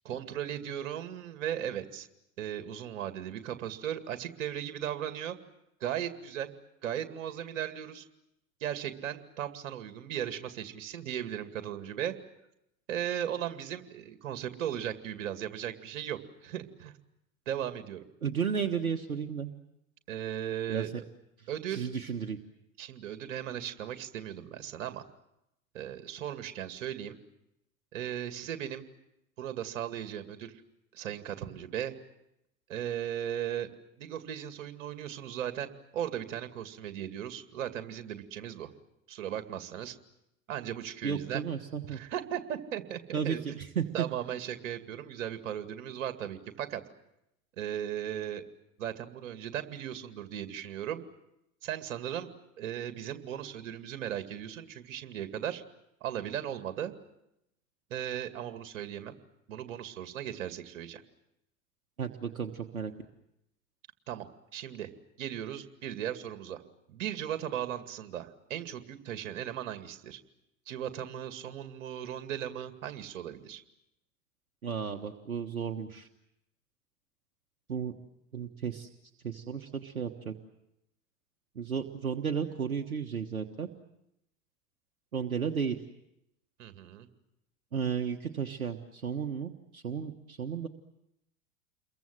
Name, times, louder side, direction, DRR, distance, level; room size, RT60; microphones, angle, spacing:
voice 1, 0.0-2.1 2.4-5.4 5.8-6.5 6.8-8.1 8.6-12.1 12.9-16.9 17.5-18.0 20.1-20.9 21.5-21.9 22.8-25.0 25.7-27.2 27.9-28.8 29.4-30.6 30.9-32.0 32.7-33.7 34.0-38.7 39.1-40.0 40.5-41.4 41.8-43.4 43.9-46.8 47.6-48.4 48.8-51.1 51.6-52.3 52.6-55.6 56.0-56.9 57.9-59.2 59.5-61.0 64.1-64.3 64.5-64.9 65.2-66.6 66.9-70.2 70.7-73.6 86.6-87.1, right 10 dB, 60° right, 9 dB, 2.3 m, -37 dB
voice 2, 18.2-19.5 20.7-21.0 21.4-22.4 41.0-42.0 43.1-44.1 62.0-62.9 74.6-76.1 77.7-77.9 78.3-78.9 79.2-80.3 81.5-83.7 85.1-85.8 87.7-90.7, right 7 dB, 80° right, 4 dB, 1.4 m, -33 dB
29.0 x 23.0 x 7.6 m, 0.83 s
figure-of-eight pair, 80°, 42 cm